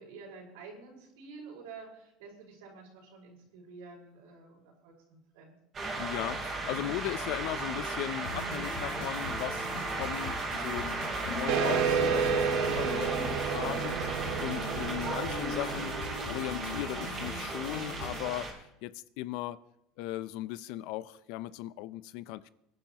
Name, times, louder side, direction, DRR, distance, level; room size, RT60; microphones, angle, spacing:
voice 1, 0.0-5.6, right 4 dB, 85° right, 5.0 m, -49 dB
sound 1, 5.7-18.5, right 3 dB, 30° right, 3.8 m, -36 dB
voice 2, 6.0-15.9 16.3-18.5 18.8-19.6 20.0-22.5, left 15 dB, 70° left, 0.6 m, -38 dB
sound 2, 8.2-18.2, left 2 dB, 90° left, 4.6 m, -41 dB
sound 3, 11.5-16.6, right 6 dB, 65° right, 1.2 m, -31 dB
23.0 x 10.5 x 3.0 m
supercardioid pair, 135°, 0 cm